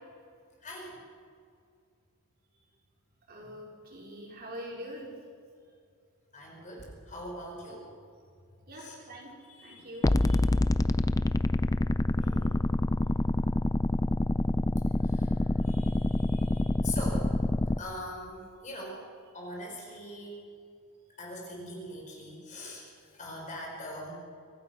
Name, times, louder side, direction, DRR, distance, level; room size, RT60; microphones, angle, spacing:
voice 1, 0.6-1.0 6.3-7.9 8.8-9.0 9.5-10.5 11.2-11.4 12.2-12.7 15.0-17.3 17.8-19.0 19.3-20.5 21.2-22.9 23.1-24.1, left 1 dB, 35° left, -1 dB, 5.5 m, -42 dB
voice 2, 3.3-5.1 8.7-9.3 9.6-10.1, equal, 45° right, -1 dB, 4.3 m, -43 dB
sound 1, 10.0-17.8, left 1 dB, 15° left, 0.4 m, -26 dB
25.0 x 17.0 x 6.1 m, 2.2 s
head